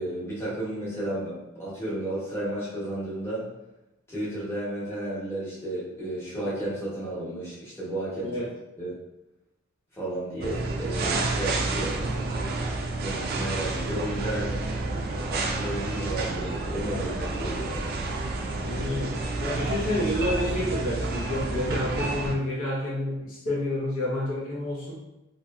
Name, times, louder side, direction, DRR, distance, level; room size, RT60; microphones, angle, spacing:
voice 1, 0.0-3.4 4.1-8.4 8.8-8.9 9.9-12.0 13.0-14.6 15.3-17.7, right 1 dB, 15° left, -9 dB, 1.0 m, -33 dB
sound 1, 10.4-22.4, right 2 dB, 50° right, 0.3 m, -29 dB
voice 2, 18.6-24.9, left 1 dB, 80° left, -6 dB, 0.9 m, -29 dB
2.7 x 2.6 x 2.3 m, 0.92 s
head